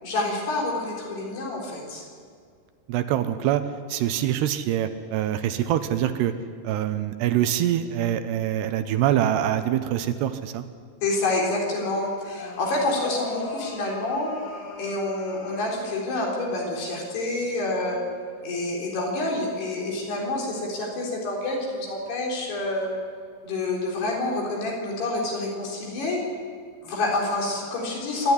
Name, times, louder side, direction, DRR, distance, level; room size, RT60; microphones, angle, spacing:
voice 1, 0.0-2.0 11.0-14.3 14.8-18.0 18.4-22.9 23.4-26.2 26.8-28.3, left 2 dB, 65° left, -2 dB, 6.0 m, -27 dB
voice 2, 2.9-3.6 3.9-6.3 6.6-10.6, right 11 dB, 80° right, 10 dB, 2.8 m, -24 dB
sound 1, 12.3-16.2 17.4-17.8, left 3 dB, 85° left, 5.0 m, -37 dB
25.5 x 12.0 x 9.7 m, 2.1 s
omnidirectional pair, 5.0 m